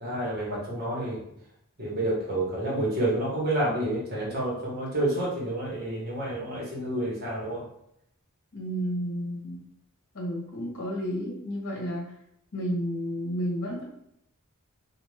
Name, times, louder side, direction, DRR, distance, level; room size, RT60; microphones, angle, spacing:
voice 1, 0.0-1.2 1.8-7.6, right 1 dB, 45° right, -5 dB, 1.1 m, -29 dB
voice 2, 8.5-9.6 10.1-12.1 12.5-13.8, equal, 60° left, -3 dB, 1.0 m, -31 dB
2.5 x 2.4 x 3.2 m, 0.75 s
head